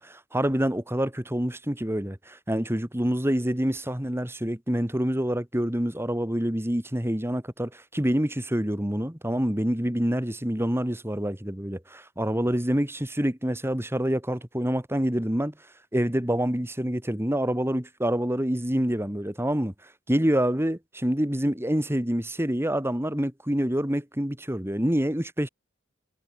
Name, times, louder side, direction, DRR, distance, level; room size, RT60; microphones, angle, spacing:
voice 1, 0.0-15.5 15.9-19.7 20.1-25.5, equal, 10° right, 2.1 m, -27 dB
head